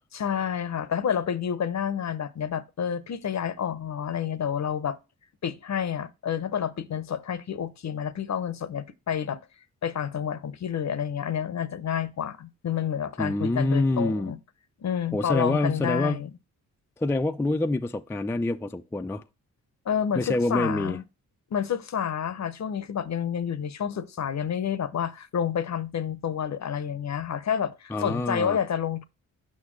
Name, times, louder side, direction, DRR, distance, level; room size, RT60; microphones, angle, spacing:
voice 1, 0.1-5.0 5.4-9.4 9.8-14.4 14.8-16.3 19.9-21.0 21.5-29.0, left 8 dB, 45° left, 0.7 m, -29 dB
voice 2, 13.2-14.3 15.1-16.3 17.0-19.2 20.2-21.0 27.9-28.6, left 2 dB, 5° left, 0.4 m, -26 dB
6.4 x 5.6 x 3.1 m
supercardioid pair, 45°, 38 cm